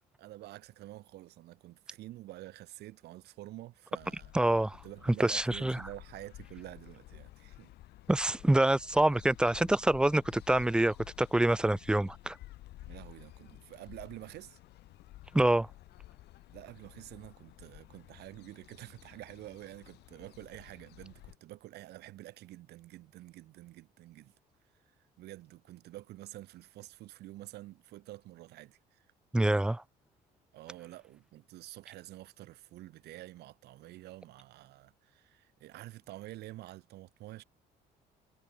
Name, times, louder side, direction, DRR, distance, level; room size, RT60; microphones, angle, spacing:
voice 1, 0.0-4.3 4.8-7.7 12.8-14.6 16.5-24.3 25.2-29.0 30.5-37.4, right 16 dB, 75° right, 1.8 m, -48 dB
city park Tel Aviv Israel, 4.0-21.4, left 16 dB, 80° left, 2.7 m, -53 dB
voice 2, 4.3-4.8 5.2-5.8 8.1-12.4 15.3-15.7 29.3-29.8, right 1 dB, 5° right, 0.4 m, -26 dB
cardioid pair, 110°, 17 cm